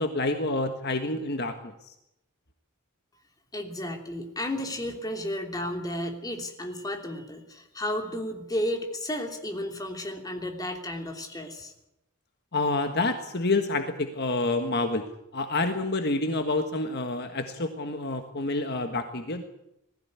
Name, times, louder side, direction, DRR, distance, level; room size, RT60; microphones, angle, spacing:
voice 1, 0.0-1.7 12.5-15.1 15.3-19.4, left 2 dB, 50° left, 6 dB, 1.6 m, -28 dB
voice 2, 3.5-11.7, left 1 dB, 15° left, 3 dB, 3.1 m, -33 dB
20.5 x 15.0 x 9.6 m, 0.84 s
head